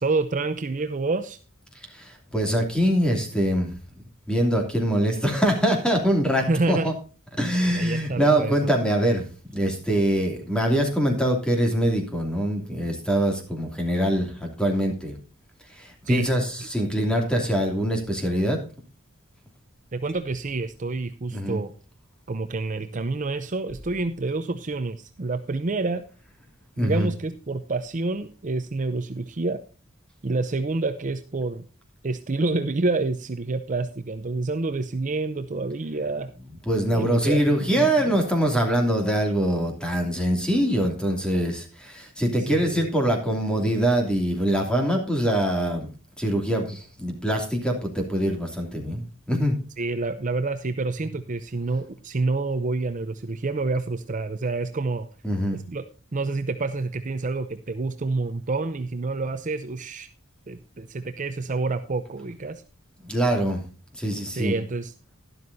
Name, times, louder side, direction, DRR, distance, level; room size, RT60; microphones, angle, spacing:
voice 1, 0.0-1.4 6.5-6.9 7.7-8.6 16.1-16.3 19.9-21.7 22.3-26.0 26.8-29.6 30.2-31.6 32.0-36.3 36.9-38.2 42.5-42.9 49.8-55.1 55.5-55.9 56.1-60.1 60.5-62.6 64.4-65.1, right 3 dB, 35° right, 9 dB, 0.6 m, -28 dB
voice 2, 1.9-3.8 4.3-6.9 7.4-15.2 15.7-18.6 21.3-21.6 26.8-27.1 36.7-45.9 46.2-49.6 55.2-55.6 63.0-63.6 63.9-64.6, right 1 dB, 5° left, 2 dB, 2.6 m, -24 dB
12.0 x 11.5 x 2.7 m, 0.36 s
head